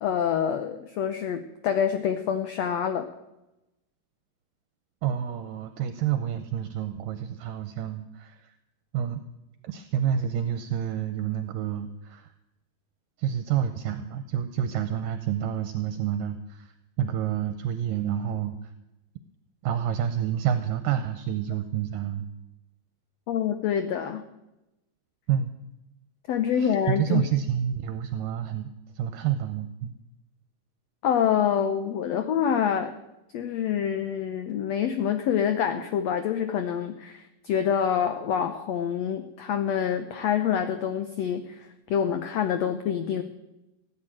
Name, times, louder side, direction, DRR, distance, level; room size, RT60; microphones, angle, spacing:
voice 1, 0.0-3.1 23.3-24.2 26.3-27.3 31.0-32.9 33.3-43.2, left 8 dB, 85° left, 8 dB, 1.4 m, -26 dB
voice 2, 5.0-8.5 8.9-9.2 9.6-12.3 13.2-18.7 19.6-22.3 25.3-25.5 26.5-29.9, right 9 dB, 75° right, 9 dB, 2.3 m, -29 dB
17.0 x 8.9 x 8.9 m, 0.94 s
omnidirectional pair, 4.2 m